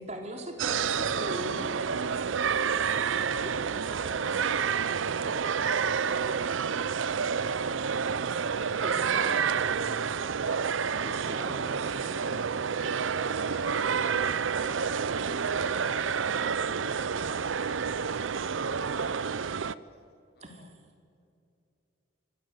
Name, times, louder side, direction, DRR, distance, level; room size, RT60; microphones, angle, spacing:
voice 1, 0.0-1.9 3.4-3.5 8.8-9.9 11.0-12.3 20.4-20.7, right 1 dB, 35° right, 3 dB, 3.5 m, -40 dB
sound 1, 0.6-19.7, right 6 dB, 80° right, 0.6 m, -29 dB
voice 2, 3.0-4.5 5.1-10.1 11.0-14.3 14.6-17.6, equal, 5° right, -7 dB, 5.2 m, -49 dB
voice 3, 13.4-14.7 15.6-16.5 16.9-17.0 17.8-19.8 20.4-20.6, left 4 dB, 50° left, 7 dB, 2.2 m, -57 dB
27.0 x 25.0 x 8.2 m, 2.6 s
head